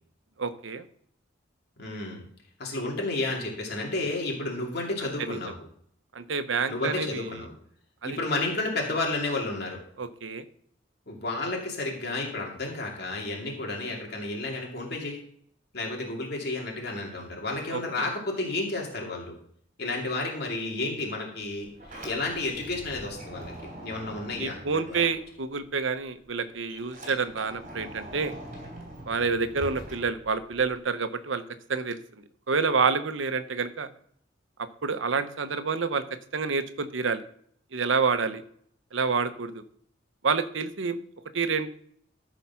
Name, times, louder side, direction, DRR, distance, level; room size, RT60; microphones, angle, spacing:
voice 1, 0.4-0.8 5.2-5.4 6.1-7.3 8.0-8.2 10.0-10.4 17.7-17.8 24.4-28.3 29.1-31.4 31.7-32.0 32.5-33.9 34.6-36.0 36.3-37.2 37.7-38.4 38.9-39.6 40.2-41.0 41.3-41.7, right 5 dB, 80° right, 11 dB, 0.9 m, -28 dB
voice 2, 1.8-2.2 2.6-5.5 6.7-7.5 8.0-9.8 11.1-15.2 15.7-19.4 19.8-21.7 22.0-23.5 23.8-25.0, left 2 dB, 55° left, -1 dB, 2.5 m, -31 dB
Sliding door, 21.4-25.8 26.1-30.8, right 1 dB, 45° right, 3.5 m, -43 dB
13.5 x 4.9 x 5.8 m, 0.64 s
head